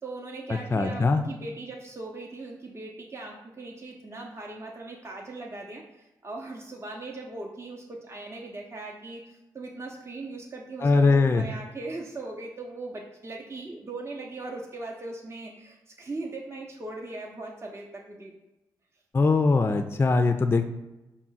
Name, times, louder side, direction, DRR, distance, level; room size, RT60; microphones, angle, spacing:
voice 1, 0.0-18.3, right 2 dB, 30° right, -1 dB, 0.6 m, -39 dB
voice 2, 0.7-1.2 10.8-11.4 19.1-20.6, left 3 dB, 25° left, 8 dB, 0.3 m, -21 dB
4.5 x 2.1 x 3.9 m, 0.98 s
supercardioid pair, 40°, 9 cm